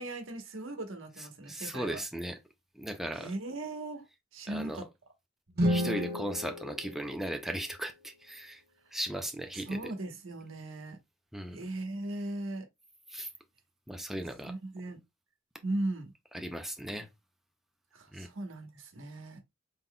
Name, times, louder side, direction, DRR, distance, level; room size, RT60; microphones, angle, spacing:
voice 1, 0.0-2.0 3.1-4.0 4.3-4.9 9.6-11.0 11.5-12.7 14.5-15.0 15.6-16.1 17.9-19.4, right 2 dB, 85° right, 1.1 m, -38 dB
voice 2, 1.5-2.4 2.8-3.3 4.5-4.8 5.7-8.6 8.9-9.9 11.3-11.6 13.1-13.3 13.9-14.5 16.3-17.1 18.1-18.3, right 1 dB, ahead, 0.5 m, -37 dB
sound 1, 5.5-7.7, equal, 55° right, 1.0 m, -32 dB
3.8 x 3.7 x 2.2 m
head